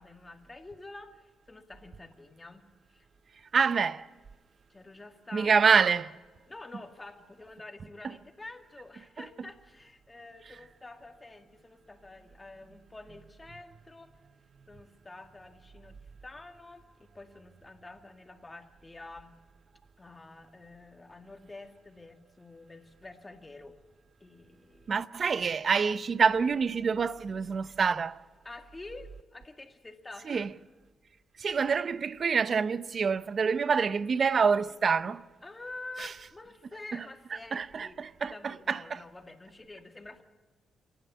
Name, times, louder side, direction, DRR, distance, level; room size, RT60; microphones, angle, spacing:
voice 1, 0.0-2.6 2.9-3.1 3.5-3.7 4.7-5.8 6.5-14.1 14.7-19.3 20.0-23.8 24.2-24.9 28.4-30.5 35.4-38.0 38.3-40.2, left 2 dB, 20° left, 2.1 m, -48 dB
voice 2, 3.5-4.1 5.3-6.1 24.9-28.2 30.3-30.5 31.4-35.2 36.0-36.1 36.9-37.0 37.5-39.0, right 5 dB, 50° right, 0.7 m, -26 dB
27.5 x 11.0 x 8.4 m
cardioid pair, 80°, 0 cm